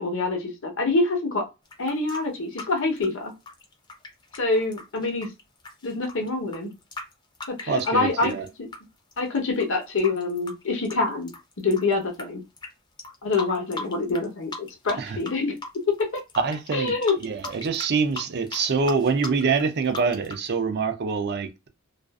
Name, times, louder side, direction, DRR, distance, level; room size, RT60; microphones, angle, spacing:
voice 1, 0.0-1.4 1.8-3.3 4.3-5.3 5.8-6.7 7.5-8.3 9.2-11.3 11.6-12.4 13.2-15.6 16.1-16.2 16.7-17.1, left 3 dB, 65° left, 0.8 m, -26 dB
sound 1, 1.6-8.8 9.1-12.2 12.6-12.7 13.0-14.2 14.5-15.3 15.6-20.5, left 3 dB, 20° left, 0.5 m, -38 dB
voice 2, 7.7-8.5 15.0-15.2 16.4-21.7, right 5 dB, 50° right, 0.4 m, -25 dB
2.5 x 2.4 x 2.2 m
head